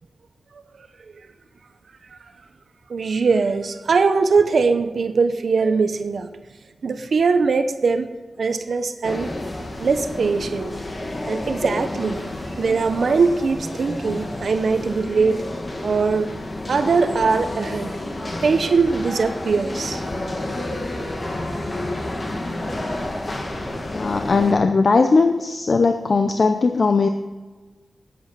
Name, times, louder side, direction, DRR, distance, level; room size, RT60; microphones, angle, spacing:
voice 1, 2.9-6.3 6.8-8.1 8.4-9.3 9.8-10.7 11.3-12.3 12.6-15.5 15.8-16.3 16.7-17.9 18.4-20.0, right 4 dB, 75° right, 9 dB, 0.9 m, -21 dB
sound 1, 9.0-24.5, left 1 dB, 35° left, 1.8 m, -30 dB
voice 2, 23.9-27.1, left 4 dB, 50° left, 7 dB, 0.7 m, -18 dB
13.5 x 8.6 x 5.9 m, 1.3 s
wide cardioid pair, 120°, 0 cm